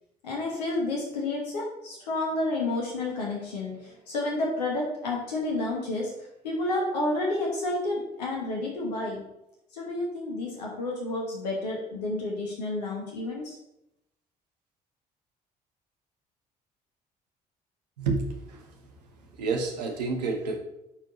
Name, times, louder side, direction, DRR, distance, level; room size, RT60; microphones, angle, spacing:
voice 1, 0.2-6.1 6.4-9.2 9.7-13.6, left 2 dB, 80° left, -2 dB, 1.3 m, -30 dB
voice 2, 18.0-18.8 19.3-20.6, right 4 dB, 75° right, 2 dB, 1.1 m, -29 dB
12.5 x 4.6 x 3.1 m, 0.85 s
figure-of-eight pair, 45°, 21 cm